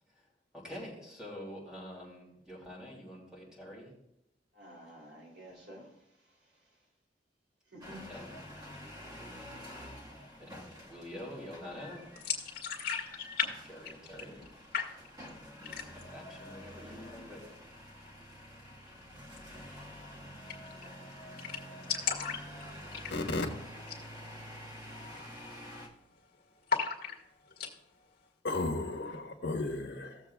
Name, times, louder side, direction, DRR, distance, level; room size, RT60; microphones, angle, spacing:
voice 1, 0.5-3.9 7.8-8.3 10.4-12.1 13.6-14.4 15.5-17.4, equal, 5° right, -4 dB, 3.0 m, -46 dB
voice 2, 4.5-5.9 7.7-8.0 16.4-17.1 20.8-21.0, right 1 dB, 80° right, -3 dB, 3.0 m, -52 dB
sound 1, 7.8-25.9, equal, 25° right, 1.5 m, -48 dB
sound 2, 12.2-13.5 13.8-14.5 14.7-15.3 15.6-16.2 16.5-16.6 16.9-17.6 19.3-19.4 19.7-19.8 20.0-20.1 20.5-20.8 21.1-21.2 21.4-23.4 23.8-24.1 24.4-24.5 25.1-25.3 25.6-26.2 26.7-27.7, left 6 dB, 60° left, 1.9 m, -35 dB
voice 3, 23.1-23.5 28.4-30.2, left 2 dB, 80° left, 2 dB, 1.4 m, -34 dB
16.5 x 7.3 x 2.3 m, 0.84 s
head